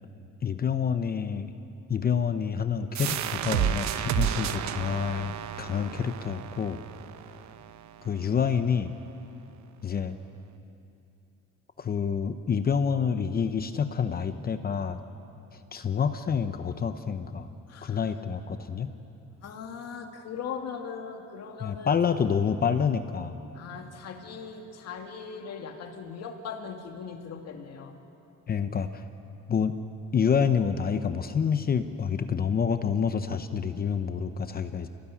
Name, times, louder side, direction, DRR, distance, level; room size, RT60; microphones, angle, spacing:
voice 1, 0.4-1.5 1.9-6.8 8.0-8.9 9.8-10.2 11.8-15.0 15.7-17.5 17.8-18.9 21.6-23.3 28.5-29.0 29.5-29.7 30.1-34.9, left 6 dB, 30° left, 9 dB, 0.8 m, -28 dB
sound 1, 3.0-8.4, right 10 dB, 65° right, 0.9 m, -32 dB
voice 2, 17.7-18.1 19.4-22.4 23.5-28.0, left 6 dB, 55° left, 4 dB, 2.4 m, -39 dB
26.0 x 17.0 x 10.0 m, 2.8 s
cardioid pair, 145°, 30 cm